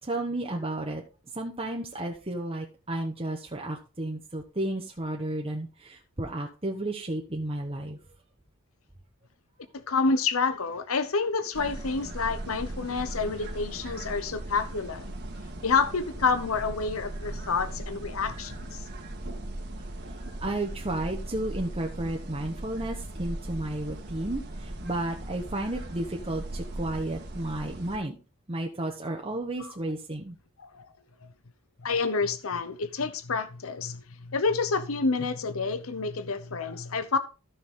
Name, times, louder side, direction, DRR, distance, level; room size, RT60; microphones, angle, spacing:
voice 1, 0.0-1.0 1.3-8.0 20.0-20.1 20.4-28.2 28.5-30.4, right 1 dB, 25° right, 1.2 m, -32 dB
voice 2, 9.7-15.1 15.6-18.8 30.6-30.9 31.8-37.2, left 4 dB, 70° left, 0.8 m, -28 dB
sound 1, 11.5-28.0, right 1 dB, 50° right, 1.8 m, -38 dB
14.0 x 6.2 x 3.8 m
head